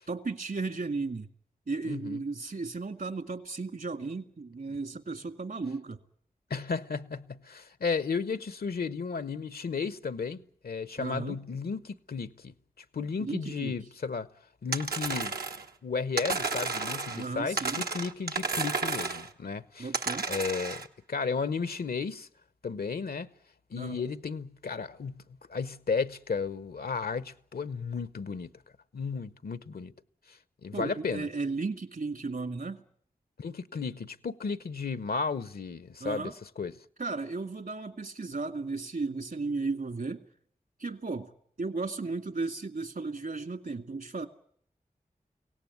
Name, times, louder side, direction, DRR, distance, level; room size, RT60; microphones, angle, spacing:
voice 1, 0.1-1.3 1.7-6.0 11.0-11.4 13.2-13.7 17.1-17.8 19.8-20.3 23.8-23.9 30.7-32.8 36.0-36.4 37.0-40.2 40.8-41.3 41.6-44.3, right 3 dB, 65° right, 2.1 m, -35 dB
voice 2, 1.8-2.2 6.5-14.3 14.6-15.3 15.8-19.9 20.3-20.8 21.1-22.3 22.6-23.3 23.7-25.2 25.5-28.5 28.9-29.9 30.3-31.3 33.4-36.7, left 5 dB, 80° left, 0.9 m, -34 dB
sound 1, 14.7-15.7 16.2-17.3 17.6-19.3 19.9-20.9, right 4 dB, 85° right, 1.2 m, -32 dB
23.5 x 17.5 x 9.5 m
cardioid pair, 45°, 16 cm